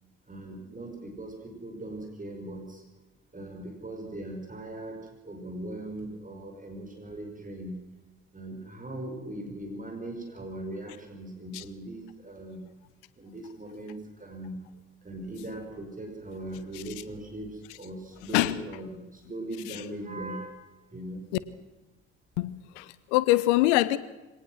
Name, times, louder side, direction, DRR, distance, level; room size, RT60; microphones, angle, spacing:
voice 1, 0.3-2.8 3.3-7.8 8.3-12.7 13.2-14.6 15.0-20.6 20.9-21.2, right 1 dB, 20° right, 3 dB, 5.0 m, -39 dB
voice 2, 22.4-24.0, left 17 dB, 70° left, 17 dB, 1.0 m, -24 dB
23.0 x 18.5 x 6.1 m, 1.1 s
figure-of-eight pair, 45°, 36 cm